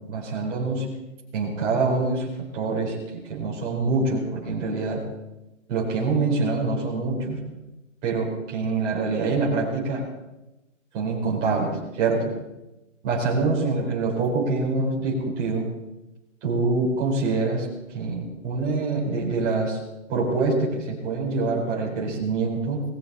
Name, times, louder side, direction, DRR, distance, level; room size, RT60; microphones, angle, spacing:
voice 1, 0.1-0.8 1.3-2.3 2.5-5.0 5.7-7.4 8.0-10.0 10.9-12.3 13.0-15.7 16.4-17.7 17.9-19.8 20.1-22.8, right 3 dB, 15° right, -4 dB, 4.1 m, -25 dB
20.0 x 17.0 x 4.2 m, 0.99 s
hypercardioid pair, 175°, 38 cm